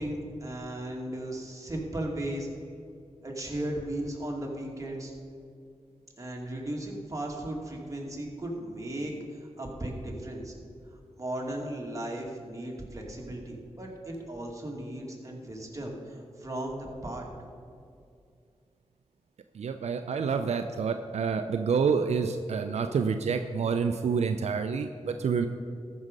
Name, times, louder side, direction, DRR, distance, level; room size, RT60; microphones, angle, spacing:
voice 1, 0.0-2.5 3.2-5.1 6.2-9.1 9.6-10.5 11.2-17.3, right 1 dB, 30° right, -1 dB, 2.4 m, -36 dB
voice 2, 19.5-25.5, right 5 dB, 80° right, 7 dB, 0.5 m, -28 dB
14.0 x 6.4 x 5.3 m, 2.4 s
cardioid pair, 60°, 11 cm